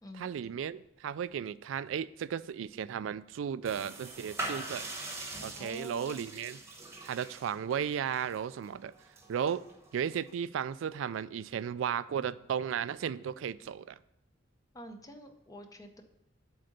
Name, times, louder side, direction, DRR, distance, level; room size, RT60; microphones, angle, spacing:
voice 1, 0.2-4.9 5.4-6.6 7.0-8.9 9.3-9.6 9.9-14.0, right 8 dB, 80° right, 18 dB, 0.3 m, -35 dB
sound 1, 3.6-10.3, right 2 dB, 15° right, 1.1 m, -43 dB
voice 2, 5.5-6.2 14.7-16.0, equal, 20° left, 6 dB, 0.7 m, -47 dB
7.6 x 4.0 x 6.5 m, 0.84 s
head